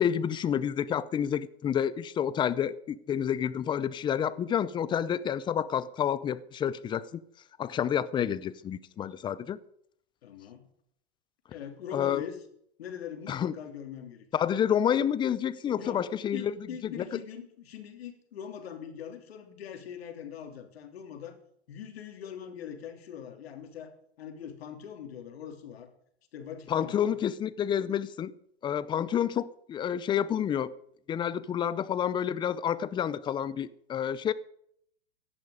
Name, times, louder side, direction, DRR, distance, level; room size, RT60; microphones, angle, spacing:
voice 1, 0.0-7.2 7.6-9.6 11.9-12.2 13.3-13.5 14.3-16.5 16.8-17.0 26.7-28.3 28.6-30.7 31.1-34.3, left 9 dB, 15° left, 0.5 m, -29 dB
voice 2, 10.2-10.7 11.5-12.4 12.8-14.3 15.8-16.0 16.3-21.3 21.7-25.9 26.3-27.2, left 8 dB, 70° left, 3.3 m, -42 dB
16.0 x 11.0 x 5.1 m
hypercardioid pair, 125°, 32 cm